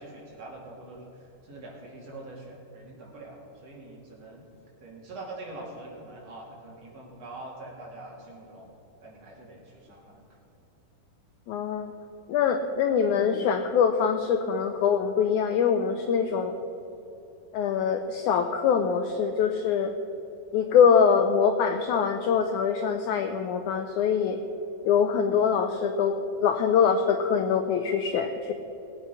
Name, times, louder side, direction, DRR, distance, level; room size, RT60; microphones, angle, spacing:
voice 1, 0.0-4.4 4.8-8.7 9.0-10.2, right 2 dB, 45° right, -3 dB, 3.4 m, -44 dB
voice 2, 11.5-11.9 12.3-16.6 17.5-19.9 20.5-24.4 24.8-26.1 26.4-28.5, left 7 dB, 85° left, 6 dB, 1.7 m, -24 dB
19.5 x 8.3 x 5.5 m, 3.0 s
omnidirectional pair, 4.2 m